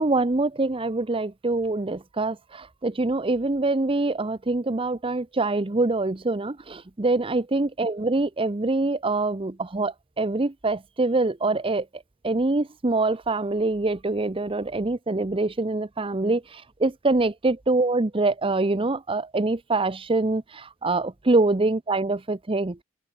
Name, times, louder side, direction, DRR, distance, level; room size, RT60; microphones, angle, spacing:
voice 1, 0.0-22.8, right 2 dB, 25° right, 0.7 m, -25 dB
open air
head